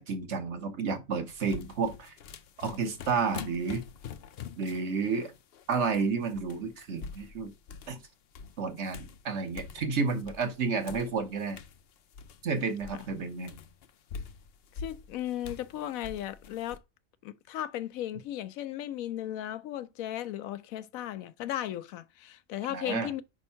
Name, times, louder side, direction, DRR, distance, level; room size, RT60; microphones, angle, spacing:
voice 1, 0.0-2.1 2.6-3.8 4.6-5.3 5.7-7.5 7.9-8.0 8.6-11.6 12.4-13.5 22.7-23.1, right 5 dB, 55° right, 1.2 m, -31 dB
sound 1, 1.3-5.9 6.2-8.0 8.3-10.5 10.8-16.8, left 6 dB, 60° left, 0.7 m, -45 dB
voice 2, 14.7-16.8 17.2-23.2, left 12 dB, 80° left, 1.0 m, -36 dB
5.2 x 3.6 x 5.5 m
omnidirectional pair, 1.4 m